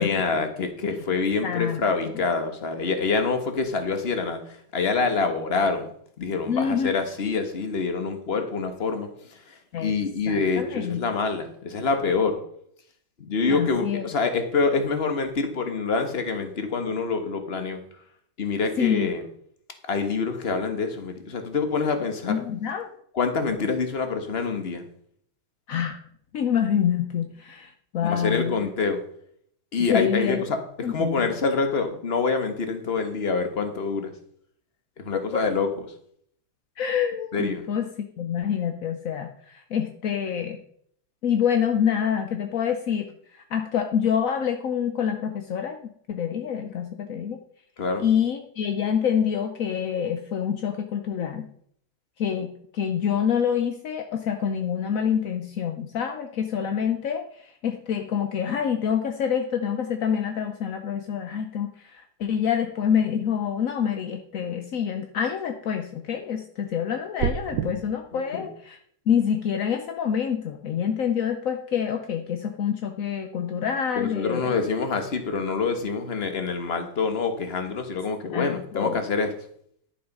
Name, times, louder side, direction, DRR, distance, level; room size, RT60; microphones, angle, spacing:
voice 1, 0.0-5.9 6.2-12.4 13.2-17.8 18.4-19.2 19.9-22.3 23.1-24.8 28.0-29.0 29.7-34.1 35.0-35.8 37.3-37.7 47.8-48.1 68.1-68.5 73.9-79.3, left 4 dB, 35° left, 6 dB, 1.3 m, -26 dB
voice 2, 1.4-1.8 2.1-2.2 6.5-7.0 9.7-9.9 10.3-11.0 13.5-14.1 18.8-19.1 22.3-22.9 25.7-26.0 26.3-28.5 29.9-30.4 30.8-31.3 35.1-35.4 36.8-37.9 38.2-40.6 41.2-43.1 43.3-45.8 46.1-47.4 48.0-51.5 52.2-57.3 57.6-61.9 62.2-68.8 69.1-74.6 78.3-79.0, left 8 dB, 65° left, 5 dB, 0.9 m, -26 dB
sound 1, 67.2-67.7, right 9 dB, 65° right, 1.3 m, -26 dB
11.0 x 6.9 x 5.4 m, 0.65 s
omnidirectional pair, 2.3 m